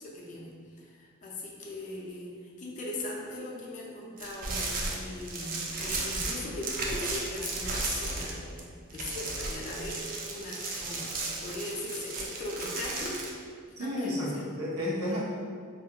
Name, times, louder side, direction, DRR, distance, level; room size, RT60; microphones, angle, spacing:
voice 1, 0.0-10.0 10.3-13.2 13.8-14.4, left 1 dB, 35° left, -3 dB, 0.4 m, -39 dB
sound 1, 4.2-8.6 8.9-13.3, right 3 dB, 40° right, 0.3 m, -34 dB
voice 2, 13.8-15.2, left 1 dB, 75° right, -7 dB, 0.8 m, -31 dB
2.4 x 2.2 x 2.7 m, 2.1 s
head